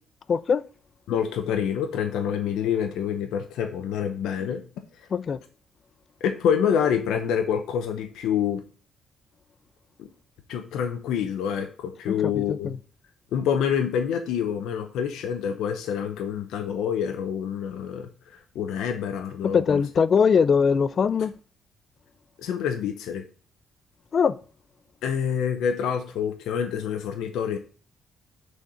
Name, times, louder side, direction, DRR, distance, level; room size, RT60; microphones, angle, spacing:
voice 1, 0.3-0.6 5.1-5.4 12.1-12.8 19.5-21.3 24.1-24.4, left 6 dB, 50° left, 0.4 m, -21 dB
voice 2, 1.1-4.6 6.2-8.6 10.0-10.1 10.5-12.7 13.3-18.1 18.5-19.8 22.4-23.2 25.0-27.6, left 8 dB, 85° left, 0.8 m, -27 dB
6.4 x 4.3 x 6.3 m
cardioid pair, 90°, 0 cm